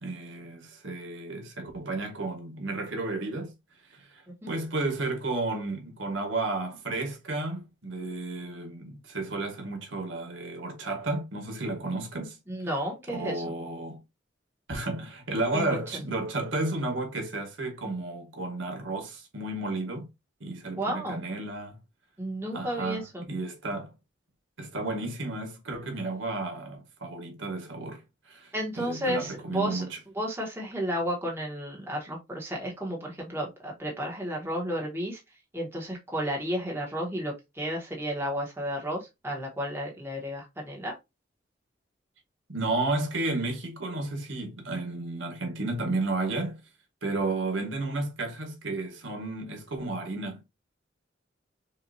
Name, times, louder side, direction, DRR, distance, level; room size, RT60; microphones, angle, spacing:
voice 1, 0.0-3.5 3.9-4.1 4.5-12.4 13.1-14.0 14.7-20.1 20.4-21.8 22.5-23.9 24.6-28.0 28.3-30.0 42.5-46.6 47.0-50.4, right 2 dB, 90° right, 1.5 m, -32 dB
voice 2, 12.5-13.4 15.5-15.8 20.7-21.2 22.2-23.2 28.5-29.9 30.1-35.2 35.5-41.0, equal, 15° right, 1.2 m, -32 dB
5.7 x 2.6 x 2.7 m
head